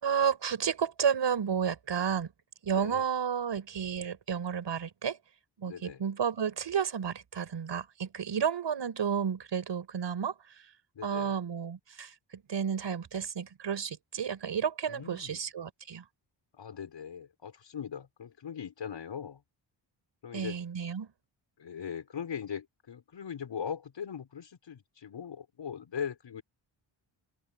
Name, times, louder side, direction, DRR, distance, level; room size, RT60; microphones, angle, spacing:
voice 1, 0.0-2.3 2.6-5.2 5.6-10.3 11.0-16.0 20.3-21.1, right 7 dB, 65° right, 5.7 m, -31 dB
voice 2, 5.7-6.0 10.9-11.4 14.9-15.4 16.5-19.4 20.2-20.6 21.6-26.4, left 7 dB, 65° left, 6.0 m, -40 dB
wide cardioid pair, 140°, 47 cm